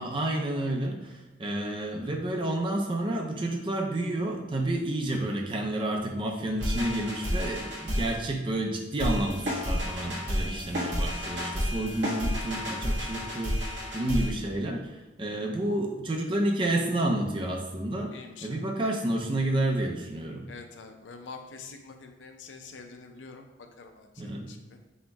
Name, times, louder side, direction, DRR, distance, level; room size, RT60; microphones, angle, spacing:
voice 1, 0.0-18.1 18.4-20.4 24.2-24.5, right 1 dB, 30° right, 1 dB, 0.5 m, -30 dB
sound 1, 6.6-8.1 9.0-14.3, equal, 85° right, 1.3 m, -31 dB
voice 2, 18.1-18.6 20.5-24.8, left 4 dB, 90° left, 5 dB, 0.5 m, -46 dB
4.2 x 2.2 x 4.6 m, 1.1 s
head